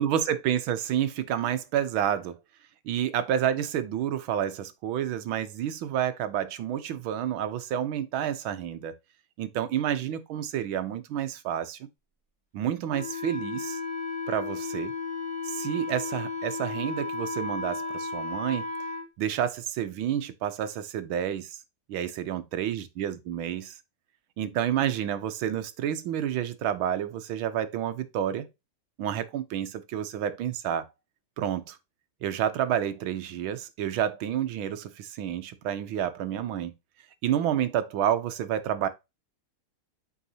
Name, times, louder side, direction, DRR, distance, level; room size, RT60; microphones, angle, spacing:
voice 1, 0.0-2.4 2.9-9.0 9.4-11.8 12.5-13.8 14.3-14.9 15.4-18.6 19.2-21.6 21.9-23.8 24.4-28.5 29.0-30.9 31.4-31.8 32.2-36.7 37.2-38.9, right 10 dB, 75° right, 1.5 m, -29 dB
Wind instrument woodwind instrument, 12.9-19.1, left 3 dB, 5° left, 2.0 m, -34 dB
8.4 x 4.8 x 2.7 m
omnidirectional pair, 2.3 m